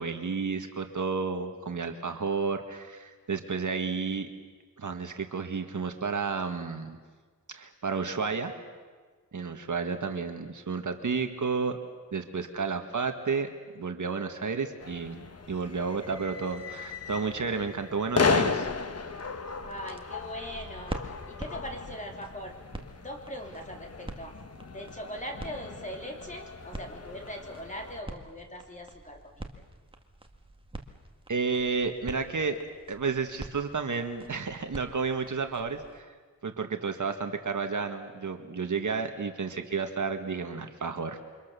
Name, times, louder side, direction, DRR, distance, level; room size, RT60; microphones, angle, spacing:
voice 1, 0.0-4.3 4.8-7.0 7.5-8.5 9.3-11.8 12.1-18.7 31.3-32.6 32.9-36.1 36.4-41.2, right 5 dB, 55° right, 6 dB, 1.8 m, -31 dB
sound 1, 14.8-28.0, left 4 dB, 40° left, 1.2 m, -35 dB
sound 2, 18.5-36.0, right 1 dB, 15° right, 1.8 m, -46 dB
voice 2, 19.6-22.6 23.0-24.3 24.7-29.4, equal, 20° left, 1 dB, 3.5 m, -41 dB
28.5 x 24.5 x 6.9 m, 1.5 s
wide cardioid pair, 120°, 36 cm